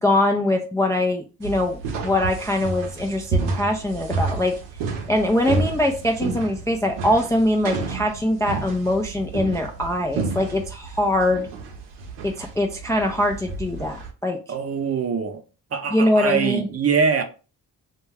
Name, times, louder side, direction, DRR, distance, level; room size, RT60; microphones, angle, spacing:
voice 1, 0.0-4.6 5.1-11.5 12.2-14.4 15.9-16.7, left 1 dB, 10° left, 0.3 m, -22 dB
sound 1, 1.4-14.1, right 4 dB, 80° right, 0.6 m, -30 dB
voice 2, 14.5-15.4 15.7-17.2, right 6 dB, 35° right, 0.6 m, -23 dB
2.2 x 2.2 x 3.3 m
supercardioid pair, 55°, 41 cm